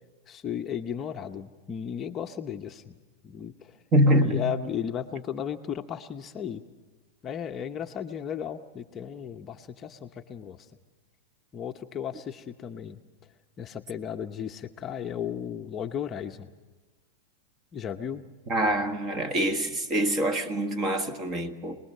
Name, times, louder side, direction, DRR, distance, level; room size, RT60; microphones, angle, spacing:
voice 1, 0.3-3.8 4.2-6.6 7.2-10.7 11.5-13.0 13.6-16.5 17.7-18.2, left 8 dB, 25° left, 0.8 m, -35 dB
voice 2, 3.9-4.5 18.5-21.8, equal, 25° right, 1.8 m, -25 dB
27.0 x 20.0 x 6.6 m
supercardioid pair, 140°, 0 cm